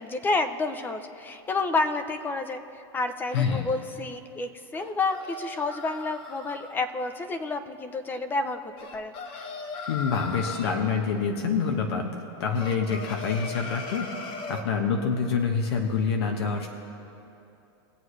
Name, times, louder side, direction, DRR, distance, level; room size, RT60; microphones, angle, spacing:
voice 1, 0.0-9.1, left 3 dB, 15° left, 9 dB, 0.7 m, -30 dB
voice 2, 3.3-3.7 9.9-14.1 14.5-16.7, left 5 dB, 80° left, 3 dB, 1.2 m, -26 dB
sound 1, 4.7-6.7 8.8-10.8 12.5-14.7, left 4 dB, 40° left, 1.1 m, -38 dB
21.5 x 8.0 x 3.2 m, 2.8 s
supercardioid pair, 140°, 13 cm